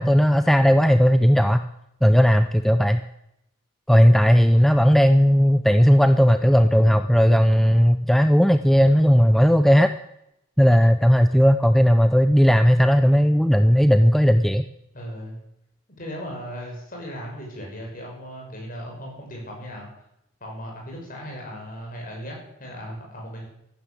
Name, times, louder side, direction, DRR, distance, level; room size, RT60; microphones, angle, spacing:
voice 1, 0.0-1.6 2.0-3.0 3.9-9.9 10.6-14.7, equal, ahead, 9 dB, 0.5 m, -16 dB
voice 2, 4.5-4.9 14.9-15.4 16.0-19.9 20.4-23.5, equal, 45° left, 0 dB, 6.2 m, -37 dB
13.5 x 12.0 x 8.5 m, 0.81 s
head